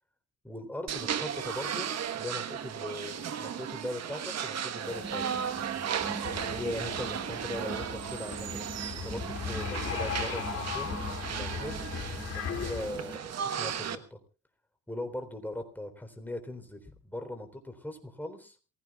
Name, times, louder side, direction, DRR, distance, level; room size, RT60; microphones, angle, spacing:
voice 1, 0.4-5.5 6.5-10.9 11.3-11.7 12.3-14.2 14.9-18.6, left 1 dB, 5° left, 5 dB, 3.7 m, -40 dB
sound 1, 0.9-14.0, right 8 dB, 60° right, 1.3 m, -35 dB
sound 2, 4.8-13.2, right 2 dB, 15° right, 1.8 m, -44 dB
sound 3, 6.2-12.9, left 7 dB, 55° left, 3.1 m, -38 dB
27.5 x 16.5 x 2.4 m, 0.34 s
cardioid pair, 90°, 30 cm